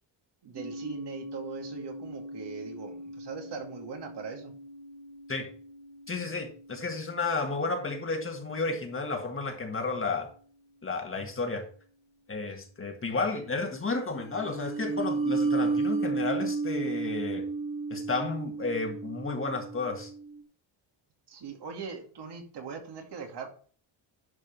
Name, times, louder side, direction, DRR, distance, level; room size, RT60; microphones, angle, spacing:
voice 1, 0.4-4.5 13.2-13.5 21.3-23.5, right 5 dB, 55° right, 2.3 m, -41 dB
sound 1, 0.6-8.1 14.1-20.4, right 3 dB, 25° right, 1.3 m, -34 dB
voice 2, 6.1-10.3 10.8-11.7 12.3-17.5 17.9-20.1, left 3 dB, 25° left, 1.7 m, -32 dB
11.0 x 4.9 x 4.6 m
cardioid pair, 130°, 47 cm